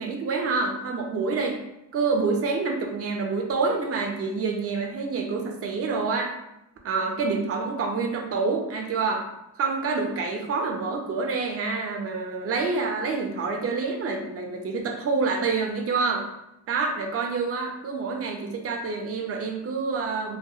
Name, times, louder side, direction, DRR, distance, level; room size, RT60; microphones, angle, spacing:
voice 1, 0.0-1.6 1.9-6.3 6.8-9.3 9.6-16.3 16.7-20.4, right 4 dB, 35° right, 3 dB, 0.4 m, -27 dB
2.3 x 2.2 x 2.6 m, 0.86 s
cardioid pair, 130°, 42 cm